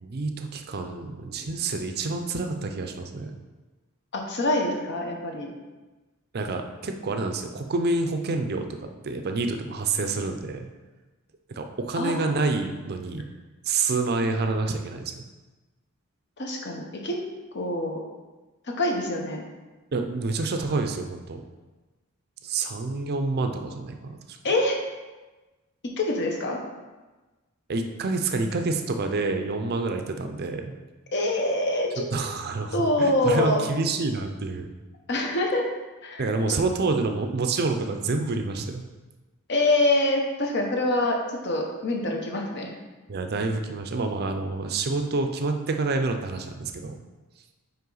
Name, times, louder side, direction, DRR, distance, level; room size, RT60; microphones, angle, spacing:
voice 1, 0.0-3.4 6.3-10.7 11.5-13.2 13.6-15.2 19.9-21.4 22.4-24.2 27.7-30.7 32.1-34.7 36.2-38.8 43.1-47.0, right 3 dB, 45° right, 5 dB, 0.5 m, -28 dB
voice 2, 4.1-5.5 12.0-12.4 16.4-17.2 17.5-18.0 18.8-19.4 24.4-24.8 26.0-26.6 31.1-32.1 32.7-33.6 35.1-35.6 36.0-36.6 39.5-42.7, left 1 dB, 55° left, 1 dB, 0.9 m, -25 dB
5.5 x 4.6 x 3.9 m, 1.2 s
head